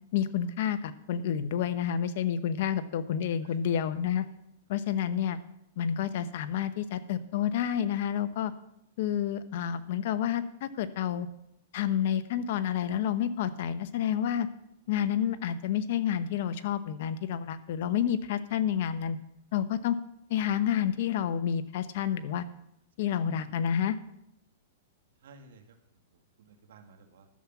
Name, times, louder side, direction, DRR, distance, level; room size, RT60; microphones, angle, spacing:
voice 1, 0.1-4.3 4.7-5.4 5.8-8.5 9.0-11.3 11.7-14.5 14.9-19.2 19.5-20.0 20.3-22.4 23.0-24.0, left 9 dB, 60° left, 12 dB, 0.9 m, -29 dB
voice 2, 25.2-27.3, right 4 dB, 75° right, 5 dB, 1.9 m, -56 dB
11.5 x 7.4 x 7.2 m, 0.80 s
hypercardioid pair, 140°, 0 cm